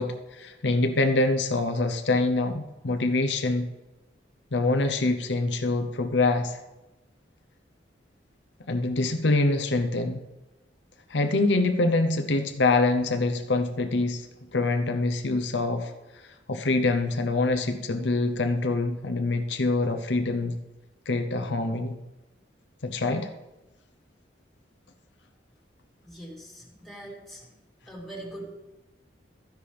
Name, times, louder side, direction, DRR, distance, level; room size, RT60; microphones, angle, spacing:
voice 1, 0.0-3.7 4.5-6.6 8.7-10.2 11.1-14.3 14.5-20.5 21.1-22.0 22.8-23.3, left 2 dB, 75° left, 6 dB, 0.8 m, -25 dB
voice 2, 26.0-27.4 27.9-28.5, right 1 dB, ahead, -4 dB, 3.0 m, -41 dB
13.5 x 10.5 x 3.4 m, 1.0 s
head